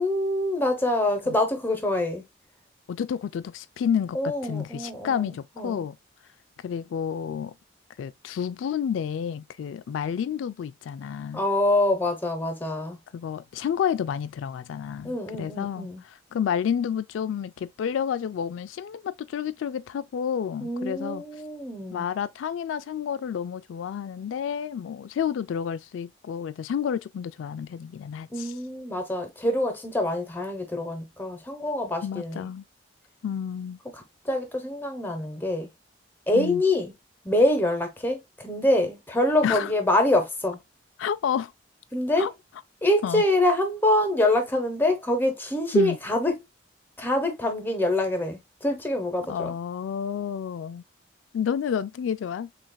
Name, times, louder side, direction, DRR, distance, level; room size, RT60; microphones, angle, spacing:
voice 1, 0.0-2.2 4.1-5.8 11.3-13.0 15.0-16.0 20.6-22.0 28.3-32.5 33.9-35.7 36.3-36.9 37.2-40.6 41.9-42.3 42.8-46.4 47.0-49.5, left 1 dB, 10° left, 0.9 m, -25 dB
voice 2, 2.9-6.0 6.6-7.5 8.0-11.4 13.1-21.2 21.9-28.5 32.0-32.6 33.2-33.8 36.3-36.6 39.4-39.7 41.0-41.5 42.2-42.3 43.0-43.2 45.7-46.0 49.3-50.8 51.3-52.5, left 8 dB, 90° left, 0.3 m, -30 dB
6.3 x 2.5 x 2.3 m
head